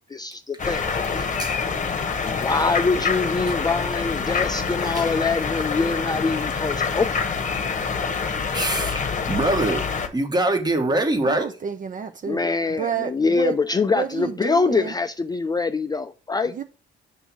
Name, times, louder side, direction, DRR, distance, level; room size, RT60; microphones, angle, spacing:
voice 1, 0.1-1.3 2.2-7.1 12.3-16.5, left 4 dB, 20° left, 0.4 m, -24 dB
sound 1, 0.6-10.1, left 5 dB, 40° left, 1.0 m, -26 dB
voice 2, 8.5-9.0 9.3-9.8 10.1-11.5, right 2 dB, 20° right, 1.3 m, -23 dB
voice 3, 11.2-12.4 12.8-13.6 13.9-14.9 16.5-16.6, right 7 dB, 40° right, 0.6 m, -29 dB
7.0 x 2.7 x 5.8 m
cardioid pair, 90°, 20 cm